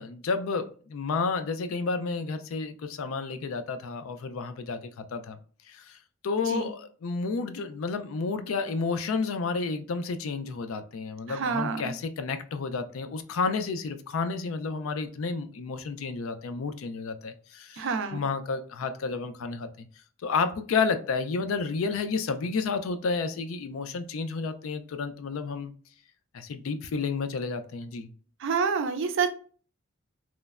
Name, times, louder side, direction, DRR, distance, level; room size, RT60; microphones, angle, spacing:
voice 1, 0.0-5.4 5.7-6.0 6.2-17.9 18.1-19.9 20.2-25.7 26.3-28.1, left 4 dB, 70° left, 10 dB, 0.4 m, -31 dB
voice 2, 11.3-11.9 17.8-18.2 28.4-29.3, right 5 dB, 60° right, 8 dB, 0.4 m, -28 dB
3.0 x 2.0 x 2.3 m, 0.41 s
head